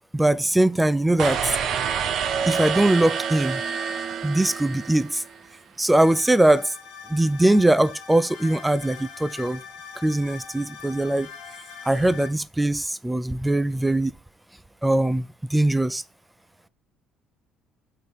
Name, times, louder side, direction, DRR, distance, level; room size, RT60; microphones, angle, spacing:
voice 1, 0.1-1.6 2.5-3.6 4.2-5.2 5.8-6.7 7.1-9.6 10.0-11.3 11.8-14.1 14.8-16.0, right 1 dB, 10° right, 0.5 m, -21 dB
sound 1, 1.2-5.4, right 7 dB, 50° right, 0.6 m, -27 dB
sound 2, 6.0-12.3, left 6 dB, 60° left, 1.4 m, -42 dB
5.4 x 4.0 x 4.3 m
figure-of-eight pair, 50°, 0 cm